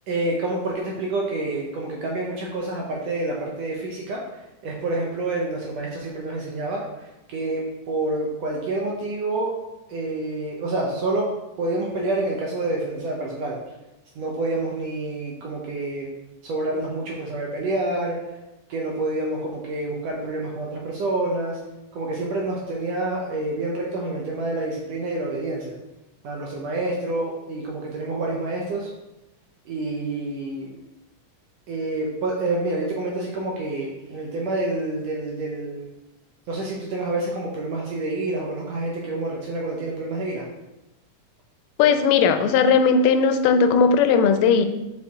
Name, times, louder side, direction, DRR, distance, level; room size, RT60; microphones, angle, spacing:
voice 1, 0.1-4.2 4.6-9.5 9.9-11.3 11.6-13.6 14.2-16.1 16.4-18.2 18.7-21.6 21.9-25.7 26.2-28.9 29.7-30.7 31.7-35.9 36.5-40.4, right 2 dB, 70° right, -2 dB, 1.6 m, -28 dB
voice 2, 41.8-44.7, left 5 dB, 90° left, 9 dB, 2.1 m, -17 dB
6.5 x 4.2 x 3.6 m, 0.97 s
omnidirectional pair, 3.7 m